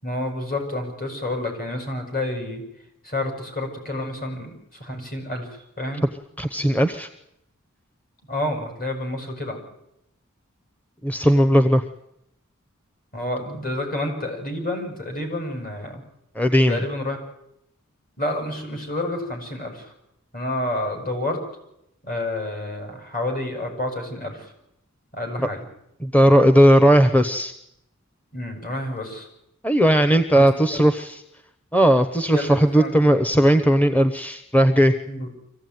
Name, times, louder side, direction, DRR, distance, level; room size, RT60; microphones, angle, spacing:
voice 1, 0.0-2.6 3.0-6.0 8.3-9.6 13.1-16.0 16.7-17.2 18.2-19.9 20.3-21.4 22.0-24.5 25.1-25.6 28.3-29.3 30.3-30.8 32.3-33.1 35.1-35.4, left 1 dB, 45° left, 4 dB, 6.7 m, -29 dB
voice 2, 6.4-7.1 11.0-11.8 16.3-16.8 26.0-27.5 29.6-31.2 31.7-34.9, equal, 10° left, 9 dB, 0.9 m, -17 dB
25.0 x 16.0 x 9.4 m, 0.81 s
head